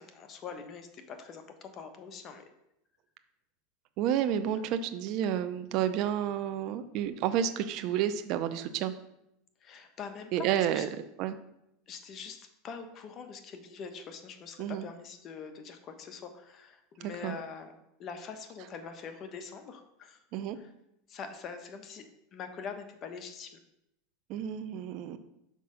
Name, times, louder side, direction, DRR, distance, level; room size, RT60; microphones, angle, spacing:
voice 1, 0.0-2.4 4.6-4.7 9.6-10.8 11.9-17.7 18.0-20.2 20.5-20.7 21.1-22.0 22.3-23.5, left 5 dB, 35° left, 7 dB, 1.0 m, -44 dB
voice 2, 4.0-8.9 10.3-10.9 11.2-11.4 14.6-14.9 17.0-17.4 20.3-20.6 24.3-25.2, right 10 dB, 50° right, 10 dB, 0.7 m, -30 dB
6.0 x 4.8 x 5.6 m, 0.81 s
supercardioid pair, 135°, 0 cm